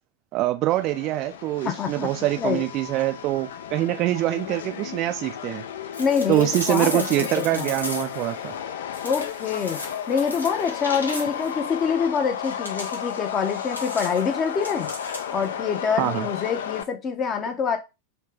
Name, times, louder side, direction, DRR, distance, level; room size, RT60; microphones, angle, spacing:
voice 1, 0.3-5.6 6.3-8.5 16.0-16.3, right 15 dB, 40° right, 0.3 m, -24 dB
Subway metro underground, 0.7-16.8, left 8 dB, 60° left, 0.4 m, -34 dB
voice 2, 1.6-2.6 6.0-7.7 9.0-9.8 10.1-14.9 15.3-17.8, left 6 dB, 25° left, 0.7 m, -26 dB
sound 1, 5.9-8.3 8.9-11.6 12.4-15.5, left 1 dB, 80° left, 0.8 m, -36 dB
3.3 x 2.8 x 3.2 m
figure-of-eight pair, 90°, 0 cm